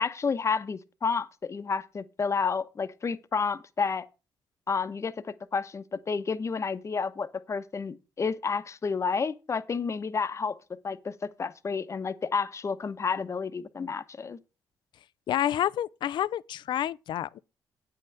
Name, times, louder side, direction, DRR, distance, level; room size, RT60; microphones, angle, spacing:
voice 1, 0.0-4.0 4.7-10.6 10.8-14.4, left 5 dB, 35° left, 1.0 m, -30 dB
voice 2, 15.3-17.4, left 11 dB, 70° left, 0.5 m, -29 dB
9.0 x 5.7 x 6.6 m
cardioid pair, 80°, 8 cm